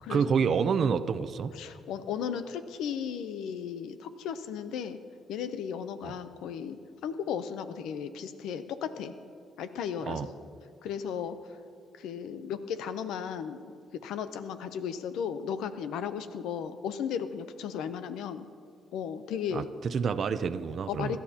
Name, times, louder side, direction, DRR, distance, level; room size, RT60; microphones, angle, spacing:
voice 1, 0.1-1.5 6.0-6.2 10.0-10.3 19.5-21.2, right 6 dB, 55° right, 10 dB, 0.5 m, -28 dB
voice 2, 1.5-5.0 5.3-9.1 9.6-10.2 10.8-11.4 12.0-13.6 13.9-18.5 18.9-19.7 20.9-21.2, left 8 dB, 85° left, 11 dB, 0.6 m, -35 dB
23.5 x 12.0 x 2.9 m, 2.3 s
cardioid pair, 90°, 0 cm